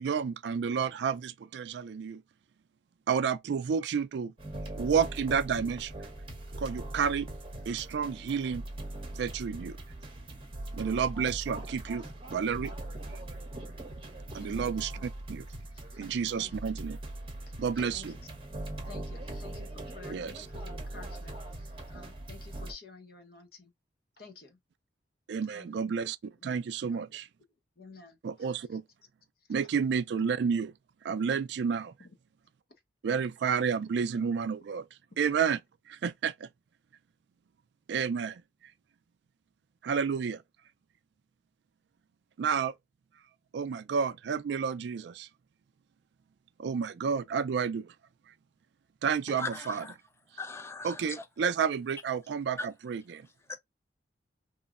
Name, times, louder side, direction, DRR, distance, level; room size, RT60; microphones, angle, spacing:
voice 1, 0.0-2.2 3.1-4.3 4.8-5.9 6.6-7.3 7.7-8.6 9.1-9.8 10.7-12.0 12.3-12.7 14.3-15.4 16.0-17.0 17.6-18.1 20.1-20.3 25.3-27.3 28.2-28.8 29.5-30.7 31.0-31.9 33.0-34.8 35.2-35.6 35.9-36.5 37.9-38.4 39.8-40.4 42.4-42.7 43.5-45.3 46.6-47.9 49.0-49.9 50.8-53.3, right 6 dB, 65° right, 0.3 m, -30 dB
sound 1, 4.4-22.7, right 1 dB, 30° right, 0.8 m, -41 dB
voice 2, 14.3-15.1 15.7-16.5 17.5-18.2 18.8-23.7 24.2-24.6 25.4-26.0 26.4-26.6 26.9-27.2 27.8-28.8 32.0-32.1, left 4 dB, 55° left, 0.8 m, -52 dB
voice 3, 49.4-49.9 50.4-51.2 52.6-52.7, left 3 dB, 15° left, 0.3 m, -38 dB
3.0 x 2.1 x 2.3 m
head